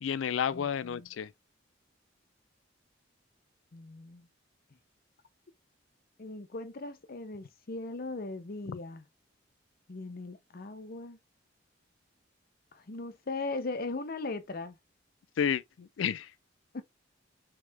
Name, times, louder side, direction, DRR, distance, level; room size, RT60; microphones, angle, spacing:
voice 1, 0.0-1.3 15.4-16.3, left 8 dB, 85° left, 0.4 m, -31 dB
voice 2, 0.5-1.1 3.7-4.3 6.2-9.0 9.9-11.2 12.7-14.8 16.7-16.8, left 3 dB, 55° left, 0.7 m, -39 dB
3.7 x 3.4 x 3.3 m
head